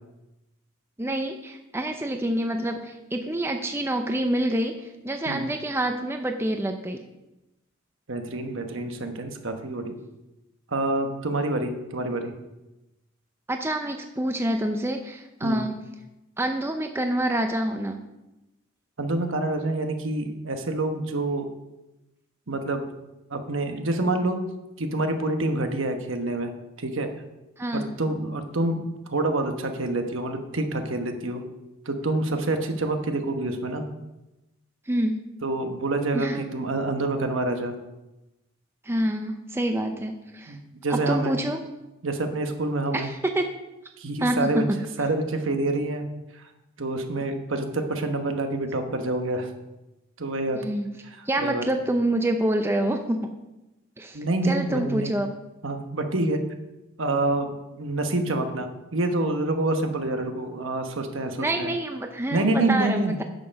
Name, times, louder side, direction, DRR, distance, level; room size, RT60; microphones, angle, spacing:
voice 1, 1.0-4.8 5.0-7.0 13.5-15.8 16.4-18.0 27.6-27.9 34.9-35.3 36.1-36.5 38.8-40.6 40.9-41.6 42.9-43.5 44.2-44.8 50.5-50.9 51.3-53.3 54.0-54.2 54.4-55.3 61.4-63.2, right 1 dB, 10° right, 5 dB, 0.5 m, -27 dB
voice 2, 8.1-9.9 10.7-12.3 15.4-15.6 19.0-21.5 22.5-22.9 23.3-24.4 24.8-27.1 27.7-28.8 29.1-31.4 31.8-33.9 35.4-37.8 40.5-41.4 42.0-43.1 44.0-44.6 45.0-46.1 46.4-46.5 46.8-49.5 50.2-50.6 51.2-51.6 54.1-55.2 55.6-56.4 57.0-61.7 62.3-63.2, right 2 dB, 70° right, 6 dB, 1.1 m, -27 dB
9.5 x 6.8 x 5.3 m, 0.98 s
head